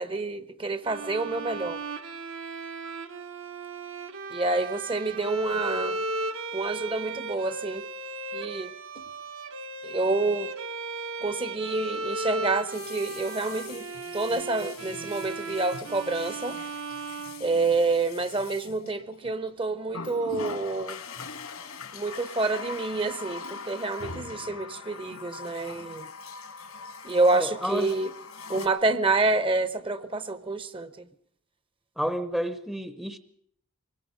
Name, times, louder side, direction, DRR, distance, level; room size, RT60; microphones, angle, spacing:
voice 1, 0.0-1.8 4.3-6.0 6.5-7.9 8.3-8.7 9.8-10.5 11.2-13.8 14.1-16.6 17.4-21.0 21.9-26.1 27.0-28.1 28.5-30.9, right 3 dB, 25° right, 0.8 m, -28 dB
Bowed string instrument, 0.8-18.1, right 2 dB, 65° right, 1.2 m, -36 dB
Water tap faucet, 8.9-9.1 12.5-19.4 19.9-28.7, left 4 dB, 85° left, 2.4 m, -42 dB
voice 2, 27.3-27.9 32.0-33.2, equal, ahead, 0.7 m, -30 dB
24.5 x 20.5 x 5.2 m
head